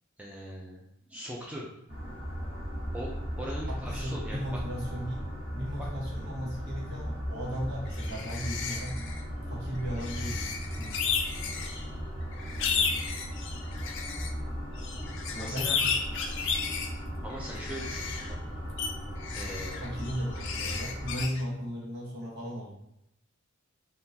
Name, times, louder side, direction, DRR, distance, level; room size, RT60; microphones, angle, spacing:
voice 1, 0.2-0.8 1.1-1.6 2.9-4.6 5.8-5.9 15.3-15.8 17.2-18.4 19.3-19.8, equal, 5° right, -4 dB, 0.4 m, -40 dB
sound 1, 1.9-21.2, equal, 25° right, 1.3 m, -37 dB
voice 2, 3.9-5.2 5.5-9.0 9.5-10.5 10.8-11.0 15.3-15.8 19.8-22.7, equal, 55° right, -6 dB, 1.3 m, -36 dB
sound 2, 7.9-9.2 9.9-11.8 12.3-14.3 14.8-16.9 17.3-18.3 18.8-18.9 19.2-21.4, left 6 dB, 60° left, 0.4 m, -33 dB
3.7 x 2.3 x 2.7 m, 0.77 s
head